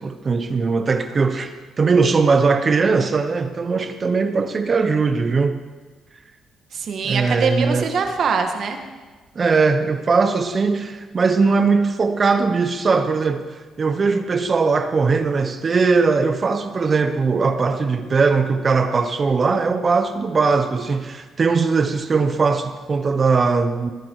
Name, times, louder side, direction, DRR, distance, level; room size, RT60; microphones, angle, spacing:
voice 1, 0.0-5.6 7.0-7.9 9.4-13.5 13.8-23.9, right 4 dB, 40° right, 9 dB, 1.0 m, -19 dB
voice 2, 6.7-8.8, right 5 dB, 60° right, 5 dB, 1.9 m, -23 dB
20.0 x 10.5 x 4.9 m, 1.3 s
cardioid pair, 90°, 0 cm